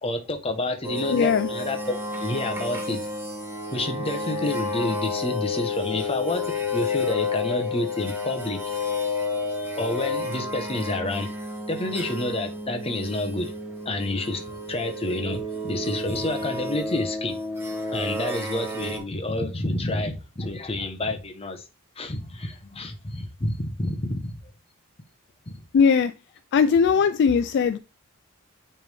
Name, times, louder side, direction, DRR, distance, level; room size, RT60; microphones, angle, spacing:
voice 1, 0.0-3.0 3.7-8.6 9.8-11.3 11.7-13.5 13.8-17.4 17.9-21.6 22.0-24.4 25.5-25.6, left 2 dB, 25° left, 0.9 m, -29 dB
sound 1, 0.8-19.0, left 2 dB, 10° right, 1.3 m, -31 dB
voice 2, 1.1-1.5 25.7-26.1 26.5-27.8, left 6 dB, 55° left, 0.3 m, -19 dB
9.4 x 3.4 x 3.4 m
head